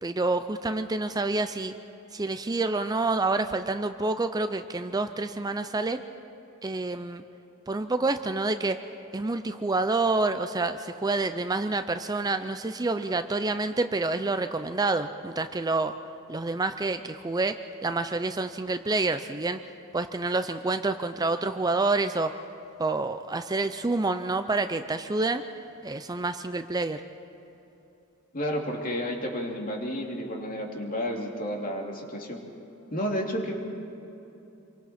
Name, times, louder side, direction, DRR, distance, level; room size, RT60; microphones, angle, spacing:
voice 1, 0.0-1.7 2.1-6.0 6.6-7.2 7.7-8.8 9.1-15.9 16.3-19.6 19.9-22.3 22.8-25.4 25.8-27.0, right 3 dB, 20° right, 9 dB, 0.5 m, -28 dB
voice 2, 28.3-32.4 32.9-33.5, equal, 40° left, 0 dB, 2.6 m, -31 dB
27.5 x 23.5 x 4.3 m, 2.9 s
head